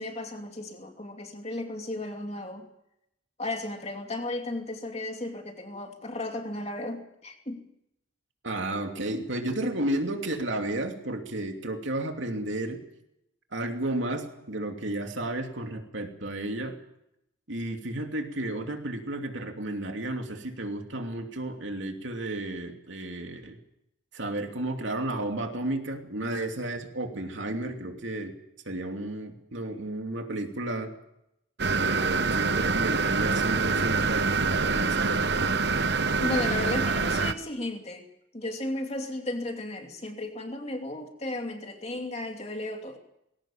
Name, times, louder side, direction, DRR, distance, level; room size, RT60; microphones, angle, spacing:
voice 1, 0.0-2.7 3.4-7.6 36.2-38.0 38.3-43.0, left 2 dB, 30° left, 4 dB, 2.7 m, -34 dB
voice 2, 8.4-12.8 13.5-16.7 17.5-23.6 24.1-28.3 28.7-30.9 31.6-35.6, right 1 dB, 70° right, 4 dB, 2.7 m, -32 dB
sound 1, 31.6-37.3, right 4 dB, 55° right, 1.0 m, -25 dB
20.5 x 17.0 x 8.7 m, 0.83 s
head